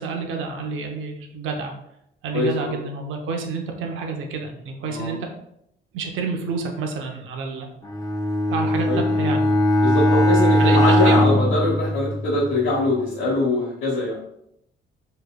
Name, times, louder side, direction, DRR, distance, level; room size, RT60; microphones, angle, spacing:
voice 1, 0.0-1.7 2.2-5.2 5.9-7.7 8.5-9.4 10.6-11.4, right 4 dB, 85° right, 3 dB, 0.7 m, -29 dB
voice 2, 2.3-2.7 4.8-5.1 8.8-9.0 9.8-14.2, left 2 dB, 90° left, -7 dB, 1.1 m, -23 dB
Bowed string instrument, 7.8-12.5, left 1 dB, 20° left, 0.6 m, -19 dB
4.7 x 3.2 x 2.2 m, 0.77 s
cardioid pair, 90°, 20 cm